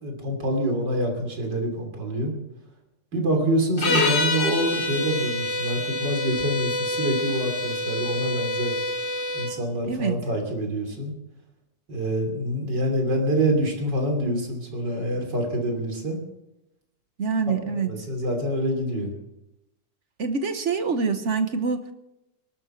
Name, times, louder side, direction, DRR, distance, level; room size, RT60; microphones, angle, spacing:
voice 1, 0.0-2.3 3.1-8.8 9.3-11.1 11.9-16.2 17.7-19.2, right 1 dB, 70° right, 3 dB, 3.8 m, -26 dB
sound 1, 3.8-9.5, left 2 dB, 80° left, 3.2 m, -27 dB
voice 2, 17.2-17.9 20.2-21.9, right 5 dB, 45° right, 8 dB, 1.2 m, -25 dB
20.5 x 12.0 x 4.5 m, 0.92 s
omnidirectional pair, 2.0 m